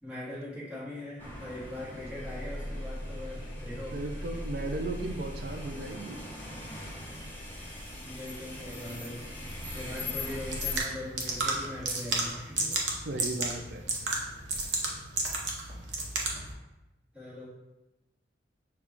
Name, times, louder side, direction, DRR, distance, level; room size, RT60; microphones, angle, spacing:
voice 1, 0.0-4.3 7.7-9.2 9.7-12.8 17.1-17.5, left 1 dB, 5° right, -9 dB, 1.1 m, -41 dB
sound 1, 1.2-10.8, left 1 dB, 10° left, 0.9 m, -39 dB
voice 2, 3.9-6.2 12.9-14.1, right 2 dB, 60° right, 5 dB, 0.5 m, -36 dB
sound 2, 10.3-16.5, right 3 dB, 80° right, 0.8 m, -33 dB
6.5 x 2.3 x 3.5 m, 0.99 s
head